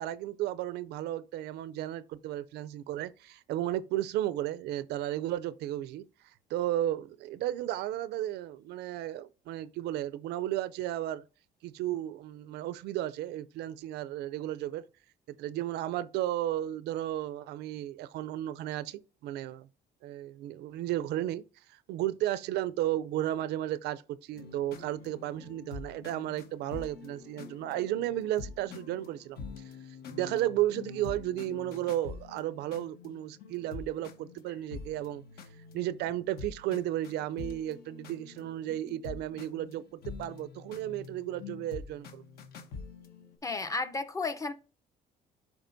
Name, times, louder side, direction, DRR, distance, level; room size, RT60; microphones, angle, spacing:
voice 1, 0.0-6.0 6.5-11.2 11.6-14.8 15.4-19.7 20.0-21.4 21.9-29.4 30.1-35.2 35.7-42.2, right 13 dB, 80° right, 0.4 m, -34 dB
sound 1, 24.3-43.4, left 5 dB, 65° left, 1.1 m, -46 dB
voice 2, 43.4-44.5, left 3 dB, 20° left, 0.6 m, -33 dB
11.5 x 4.9 x 2.6 m
cardioid pair, 110°, 17 cm